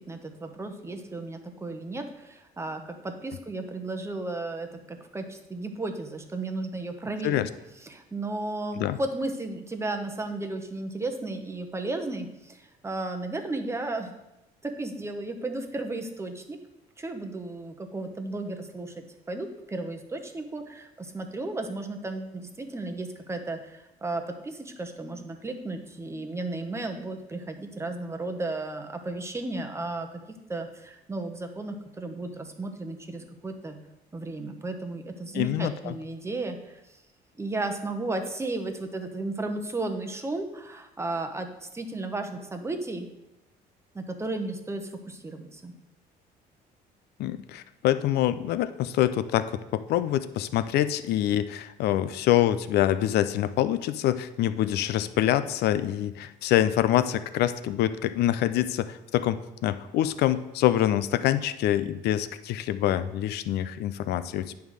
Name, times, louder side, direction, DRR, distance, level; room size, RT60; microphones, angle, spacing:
voice 1, 0.0-7.3 7.8-14.1 14.6-16.6 17.0-30.1 30.5-33.8 34.1-37.0 37.4-43.1 43.9-45.7, right 2 dB, 15° right, 5 dB, 0.9 m, -34 dB
voice 2, 35.3-35.9 47.2-64.5, left 12 dB, 75° left, 13 dB, 0.5 m, -25 dB
9.4 x 3.5 x 6.3 m, 0.92 s
cardioid pair, 110°, 17 cm